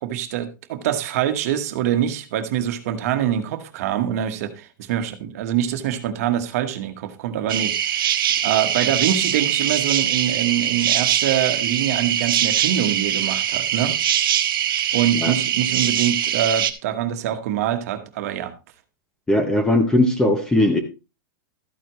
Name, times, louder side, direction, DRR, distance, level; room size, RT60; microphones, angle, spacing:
voice 1, 0.0-7.7 8.0-8.2 8.4-14.0 14.9-18.5, right 10 dB, 45° right, 8 dB, 1.2 m, -24 dB
sound 1, 7.5-16.7, right 10 dB, 75° right, 1.1 m, -22 dB
voice 2, 19.3-20.8, left 1 dB, 5° left, 8 dB, 0.6 m, -18 dB
13.0 x 9.3 x 3.1 m, 0.28 s
supercardioid pair, 175°, 12 cm